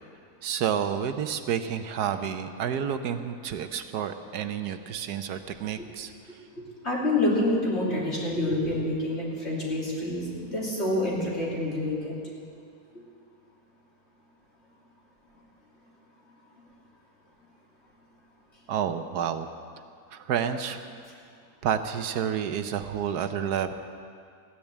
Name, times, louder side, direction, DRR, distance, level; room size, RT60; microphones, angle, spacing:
voice 1, 0.4-6.4 18.7-19.5 20.1-20.9 21.6-23.7, right 8 dB, 80° right, 9 dB, 1.3 m, -30 dB
voice 2, 6.6-12.1, left 1 dB, 40° left, -5 dB, 3.6 m, -27 dB
15.5 x 10.5 x 8.1 m, 2.3 s
omnidirectional pair, 1.7 m